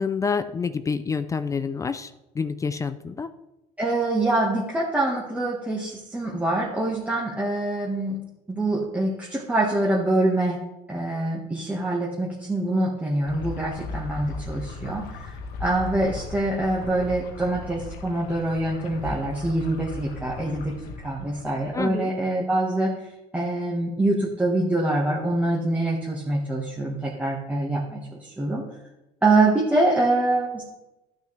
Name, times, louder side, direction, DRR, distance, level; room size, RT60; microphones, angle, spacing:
voice 1, 0.0-3.3 21.7-22.1, left 5 dB, 20° left, 12 dB, 0.4 m, -28 dB
voice 2, 3.8-8.2 8.5-10.6 10.9-15.3 15.6-22.9 23.3-28.6 29.2-30.6, right 2 dB, 10° right, -4 dB, 1.4 m, -25 dB
sound 1, 13.3-21.8, left 3 dB, 80° left, 1.3 m, -37 dB
14.0 x 6.4 x 3.3 m, 0.95 s
cardioid pair, 130°, 16 cm